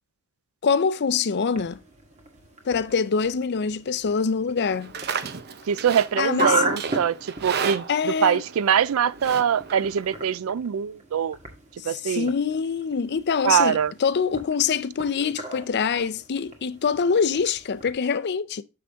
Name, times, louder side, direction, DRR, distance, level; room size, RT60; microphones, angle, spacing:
voice 1, 0.6-1.8 2.7-4.9 6.1-6.6 7.9-8.4 11.8-18.6, left 6 dB, 55° left, 0.5 m, -24 dB
sound 1, 1.5-17.9, right 2 dB, 35° right, 1.7 m, -36 dB
Livestock farm animals working animals, 4.7-10.4, right 6 dB, 50° right, 0.7 m, -34 dB
voice 2, 5.7-11.4 11.9-12.3 13.4-13.9, right 8 dB, 75° right, 0.4 m, -23 dB
6.9 x 6.2 x 3.4 m
head